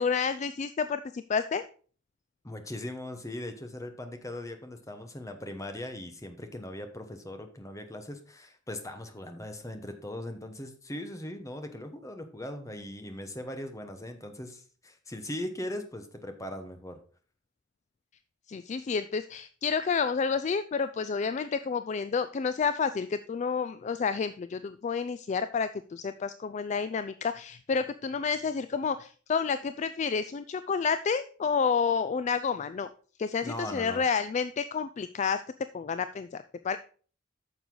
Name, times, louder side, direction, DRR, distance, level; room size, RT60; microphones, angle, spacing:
voice 1, 0.0-1.6 18.5-32.9 33.2-35.4 35.7-36.8, left 5 dB, 35° left, 12 dB, 0.3 m, -30 dB
voice 2, 2.4-17.0 33.4-34.0, left 1 dB, 15° left, 6 dB, 1.1 m, -39 dB
9.3 x 6.6 x 3.9 m, 0.41 s
head